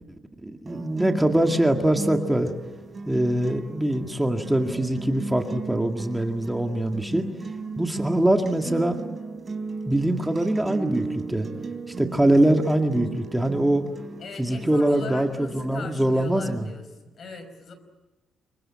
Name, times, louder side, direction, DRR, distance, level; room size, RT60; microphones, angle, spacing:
voice 1, 0.4-2.5 3.1-7.3 7.8-9.0 9.9-11.5 11.9-13.9 14.4-16.7, right 1 dB, 5° right, 4 dB, 2.0 m, -23 dB
sound 1, 0.7-16.7, right 3 dB, 30° right, 3.8 m, -36 dB
voice 2, 14.2-16.8 17.2-17.7, left 4 dB, 55° left, 9 dB, 5.3 m, -39 dB
26.0 x 23.5 x 8.9 m, 1.1 s
cardioid pair, 100°, 0 cm